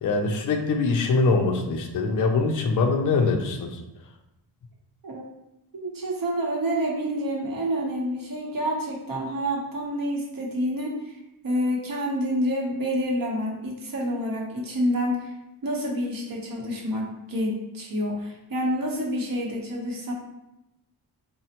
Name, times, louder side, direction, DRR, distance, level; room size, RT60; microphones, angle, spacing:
voice 1, 0.0-3.8, left 3 dB, 50° left, 3 dB, 0.4 m, -23 dB
voice 2, 5.7-10.9 11.4-15.3 15.6-20.1, equal, 55° right, -2 dB, 0.8 m, -28 dB
4.0 x 2.1 x 2.8 m, 0.91 s
wide cardioid pair, 140°, 42 cm